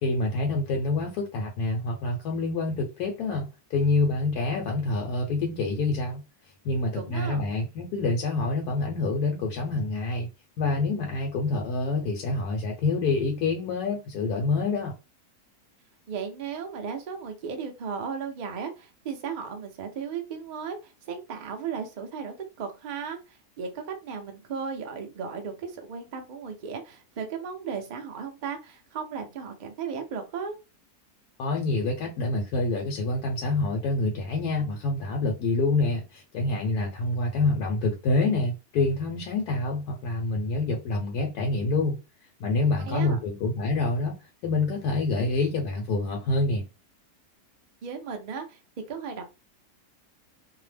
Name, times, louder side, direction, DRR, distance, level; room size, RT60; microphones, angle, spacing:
voice 1, 0.0-6.2 6.6-10.3 10.6-15.0 31.4-42.0 42.4-44.2 44.4-46.6, left 3 dB, 85° left, 1.1 m, -27 dB
voice 2, 6.9-7.4 16.1-30.6 42.8-43.2 47.8-48.6 48.9-49.2, right 6 dB, 55° right, 0.5 m, -35 dB
2.7 x 2.0 x 3.2 m
omnidirectional pair, 1.6 m